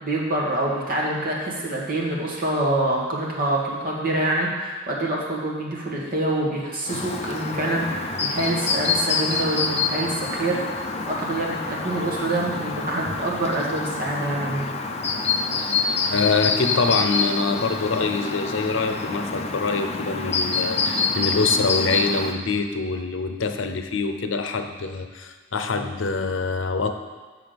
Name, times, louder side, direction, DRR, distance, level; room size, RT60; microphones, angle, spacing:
voice 1, 0.0-11.6 11.8-14.7, right 1 dB, 50° right, -3 dB, 1.7 m, -26 dB
Chirp tweet, 6.9-22.3, left 4 dB, 35° left, 0.6 m, -26 dB
voice 2, 16.1-26.9, left 4 dB, 85° left, 7 dB, 0.7 m, -25 dB
7.8 x 6.1 x 5.2 m, 1.4 s
head